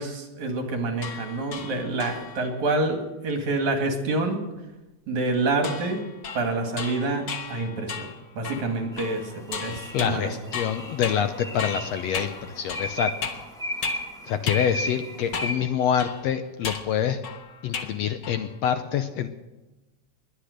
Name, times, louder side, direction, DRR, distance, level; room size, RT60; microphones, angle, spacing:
voice 1, 0.0-4.4 5.1-6.0 6.4-8.1 8.4-10.4, right 2 dB, 70° right, 4 dB, 3.5 m, -27 dB
sound 1, 1.0-2.6 5.6-14.1 14.5-14.6 15.3-15.7 16.0-18.0 18.2-18.6, left 6 dB, 55° left, 1.3 m, -36 dB
sound 2, 8.9-15.5, left 1 dB, ahead, 1.8 m, -35 dB
voice 2, 9.9-13.1 13.8-13.9 14.3-17.2 17.6-19.3, left 8 dB, 75° left, 9 dB, 1.7 m, -26 dB
21.0 x 10.0 x 6.5 m, 1.1 s
omnidirectional pair, 3.5 m